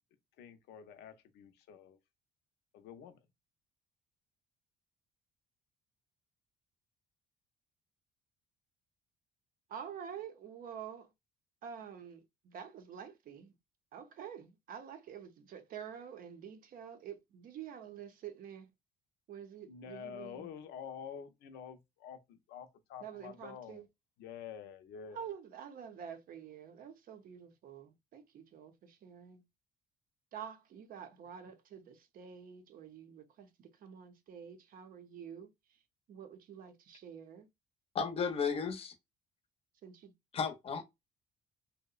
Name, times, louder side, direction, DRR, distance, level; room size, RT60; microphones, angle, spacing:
voice 1, 0.4-2.0 2.7-3.2 19.7-23.8 24.2-25.3, left 7 dB, 80° left, 0.6 m, -48 dB
voice 2, 9.7-11.1 11.6-13.5 13.9-18.7 19.3-20.5 23.0-23.8 25.1-29.4 30.3-33.5 33.8-35.5 36.1-37.5 39.8-40.1, right 8 dB, 55° right, 0.6 m, -48 dB
voice 3, 37.9-38.9 40.3-40.8, left 6 dB, 35° left, 0.6 m, -34 dB
2.7 x 2.0 x 2.3 m
cardioid pair, 110°, 17 cm